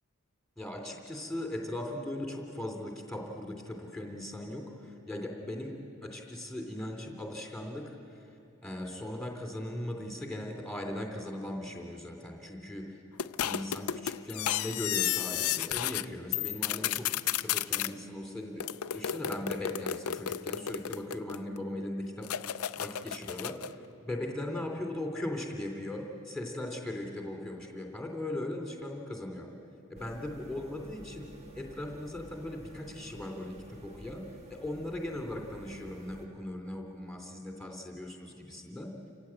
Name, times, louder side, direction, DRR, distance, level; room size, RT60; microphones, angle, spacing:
voice 1, 0.6-5.7 6.0-8.2 8.6-12.9 13.4-17.1 17.4-18.6 18.9-22.3 22.8-23.6 24.0-29.5 29.9-31.3 31.5-38.9, left 1 dB, 5° left, 2 dB, 2.9 m, -38 dB
sound 1, 13.2-16.0 16.3-17.9 18.6-21.6 22.2-23.7, left 11 dB, 85° left, 0.5 m, -33 dB
sound 2, 30.0-36.3, right 1 dB, 30° right, 1.6 m, -51 dB
29.0 x 16.0 x 8.8 m, 2.5 s
head